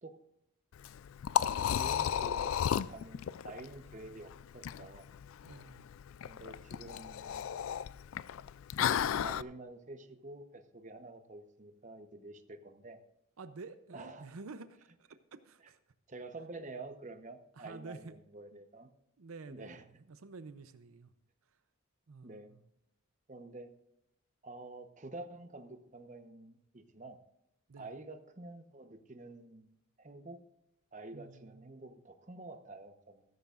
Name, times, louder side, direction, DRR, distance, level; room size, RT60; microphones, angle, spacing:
Liquid, 0.7-9.4, left 9 dB, 70° left, 0.3 m, -34 dB
voice 1, 1.4-5.1 6.2-7.5 8.8-13.0 13.9-14.3 16.1-18.9 19.5-19.8 22.2-22.5 23.3-23.7 24.4-27.2 27.8-30.4 30.9-33.2, right 2 dB, 35° right, 7 dB, 0.9 m, -49 dB
voice 2, 5.4-5.8 13.4-15.8 17.6-18.2 18.5-18.6 19.2-21.1 22.1-22.6 27.7-27.9 31.1-31.6, right 3 dB, 80° right, 11 dB, 0.6 m, -50 dB
15.0 x 13.5 x 2.5 m, 0.80 s
head